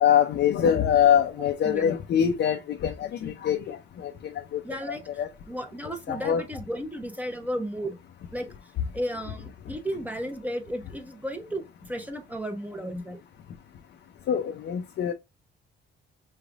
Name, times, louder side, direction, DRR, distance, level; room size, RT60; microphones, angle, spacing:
voice 1, 0.0-4.6 4.9-5.3 6.1-6.4 14.3-15.1, left 9 dB, 60° left, 0.6 m, -24 dB
voice 2, 4.6-5.0 5.5-8.0 8.3-8.5 8.9-13.2, equal, 10° right, 0.8 m, -34 dB
4.8 x 3.3 x 2.4 m
cardioid pair, 90°, 20 cm